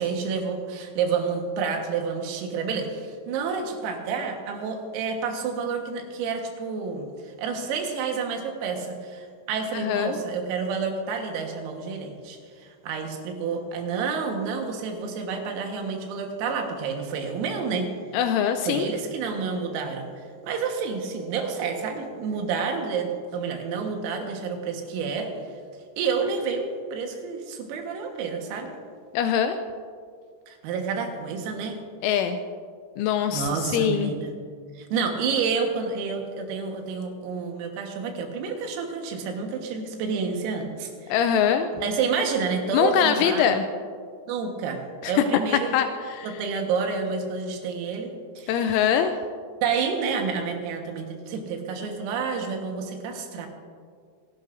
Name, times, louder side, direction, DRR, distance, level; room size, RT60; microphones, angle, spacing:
voice 1, 0.0-17.9 18.7-20.1 20.4-25.3 26.0-28.7 30.5-31.8 33.3-34.3 34.8-41.2 41.7-43.6 44.3-45.8 46.2-48.8 49.6-53.5, right 5 dB, 85° right, 3 dB, 4.1 m, -29 dB
voice 2, 9.7-10.2 18.1-18.9 29.1-29.6 32.0-32.4 33.0-34.1 41.1-41.7 42.7-43.6 45.0-45.2 45.7-46.3 48.5-49.1, left 8 dB, 85° left, 7 dB, 2.8 m, -23 dB
27.0 x 11.5 x 2.6 m, 2.1 s
omnidirectional pair, 5.9 m